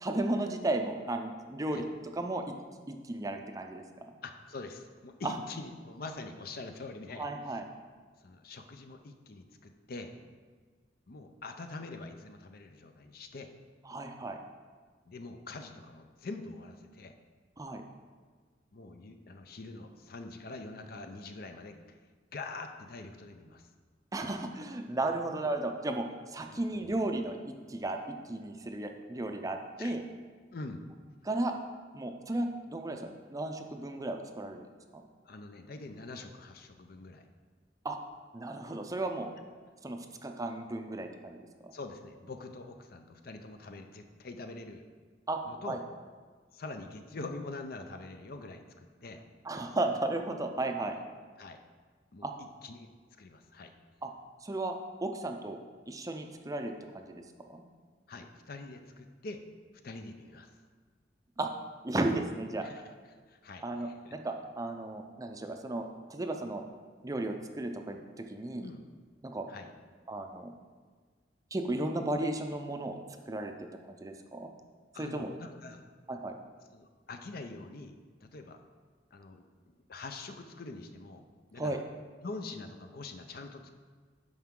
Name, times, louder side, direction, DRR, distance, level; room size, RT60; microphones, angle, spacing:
voice 1, 0.0-1.9 2.1-2.6 2.9-3.8 5.2-5.3 7.2-7.6 13.9-14.4 17.6-17.8 24.1-30.0 31.2-31.5 31.9-34.7 34.9-35.0 37.8-38.0 38.3-39.3 39.8-41.4 41.6-41.7 45.3-45.8 49.4-51.0 52.2-52.3 54.0-54.1 54.4-54.7 55.0-55.6 55.9-57.2 57.5-57.6 61.4-61.5 61.8-62.7 63.6-66.6 67.0-68.0 68.3-68.7 69.2-69.5 70.1-70.5 71.5-73.0 73.3-73.5 73.9-74.5 75.0-75.3 76.1-76.3 81.6-81.8, right 2 dB, 20° right, 4 dB, 0.5 m, -34 dB
voice 2, 4.2-7.6 8.2-10.1 11.1-13.5 15.1-17.1 18.7-22.0 22.3-23.6 26.5-26.6 29.8-30.0 30.5-30.8 35.3-37.3 41.7-44.8 45.4-45.8 46.5-49.2 51.4-51.6 52.1-52.3 52.6-52.9 53.2-53.7 58.1-59.4 59.8-60.5 62.6-62.9 63.3-64.1 68.6-68.9 69.5-69.7 74.9-75.9 76.7-77.9 78.2-78.6 79.1-79.4 79.9-81.2 81.5-81.8 82.2-83.7, left 3 dB, 55° left, 6 dB, 0.6 m, -44 dB
12.0 x 4.6 x 3.7 m, 1.5 s
head